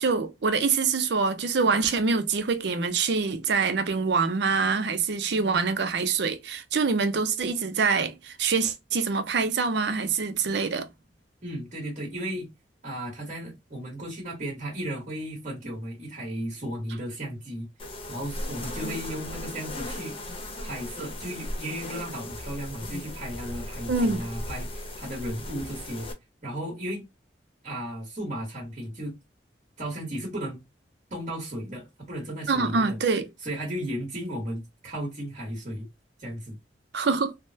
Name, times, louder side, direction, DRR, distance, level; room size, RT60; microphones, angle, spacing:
voice 1, 0.0-10.9 23.9-24.2 32.5-33.3 36.9-37.3, right 4 dB, 70° right, 0.5 m, -25 dB
voice 2, 11.4-12.5 12.8-17.7 18.1-20.2 20.6-26.1 26.4-27.0 27.6-29.1 29.8-30.6 31.1-33.0 33.4-35.9 36.2-36.6, right 1 dB, 45° right, 1.3 m, -35 dB
sound 1, 17.8-26.1, left 1 dB, 30° left, 0.8 m, -37 dB
3.4 x 2.1 x 2.7 m
head